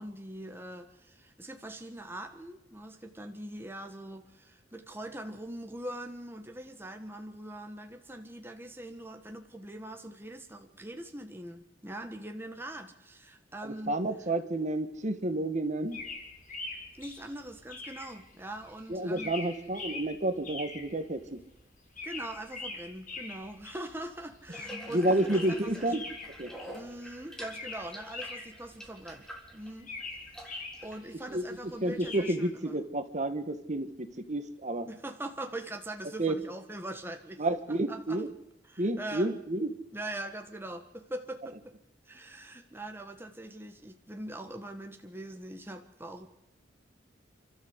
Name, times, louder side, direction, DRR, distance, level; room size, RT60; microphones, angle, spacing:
voice 1, 0.0-14.0 17.0-19.3 22.0-26.0 26.7-29.3 29.5-29.9 30.3-32.8 34.9-38.2 38.6-39.3 39.9-41.7 42.0-46.3, right 1 dB, 10° right, 5 dB, 1.4 m, -42 dB
voice 2, 13.6-16.0 18.9-21.4 24.9-26.0 26.4-26.5 31.3-31.4 31.8-34.9 36.2-36.4 37.4-38.3 38.8-39.7, right 1 dB, 40° right, 9 dB, 1.7 m, -30 dB
sound 1, 15.9-32.3, left 3 dB, 45° left, 5.4 m, -44 dB
Water tap faucet / Bathtub (filling or washing), 24.5-31.0, equal, 5° left, 3.4 m, -46 dB
29.0 x 13.0 x 8.1 m, 0.82 s
head